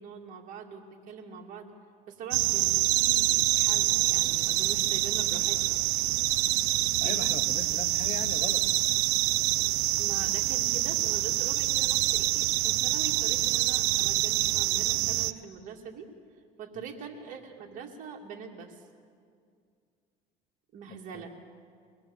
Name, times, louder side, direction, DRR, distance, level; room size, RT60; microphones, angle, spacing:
voice 1, 0.0-1.7 2.1-5.8 7.0-7.3 10.0-16.1 16.6-18.9 20.7-21.3, right 6 dB, 55° right, 0 dB, 2.4 m, -43 dB
sound 1, 2.3-15.3, right 17 dB, 80° right, 0.6 m, -26 dB
voice 2, 7.0-8.7 16.7-16.9 20.9-21.2, left 8 dB, 50° left, 10 dB, 1.2 m, -40 dB
23.0 x 19.0 x 7.2 m, 2.2 s
cardioid pair, 110°, 16 cm